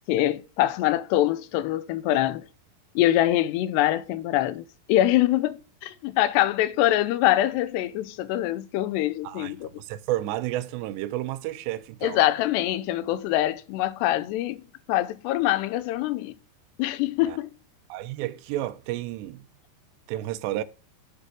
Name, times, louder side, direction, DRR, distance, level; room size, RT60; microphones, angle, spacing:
voice 1, 0.1-2.4 3.0-9.7 12.0-14.6 14.9-16.3 16.8-17.5, left 14 dB, 85° left, 2.8 m, -24 dB
voice 2, 9.2-12.2 17.3-17.4 17.9-19.5 20.1-20.6, right 14 dB, 90° right, 3.0 m, -31 dB
9.9 x 7.8 x 3.7 m
omnidirectional pair, 4.9 m